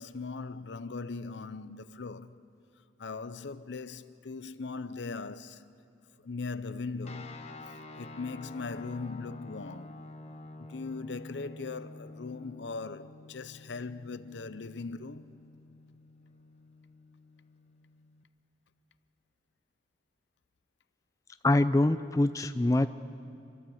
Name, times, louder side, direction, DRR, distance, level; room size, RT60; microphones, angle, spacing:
voice 1, 0.0-2.3 3.0-5.6 6.2-7.5 8.0-10.0 10.7-15.3, left 4 dB, 65° left, 0.6 m, -39 dB
sound 1, 7.0-18.2, left 2 dB, 35° left, 1.2 m, -49 dB
voice 2, 21.4-22.9, left 2 dB, 15° left, 0.4 m, -24 dB
28.5 x 12.5 x 7.8 m
head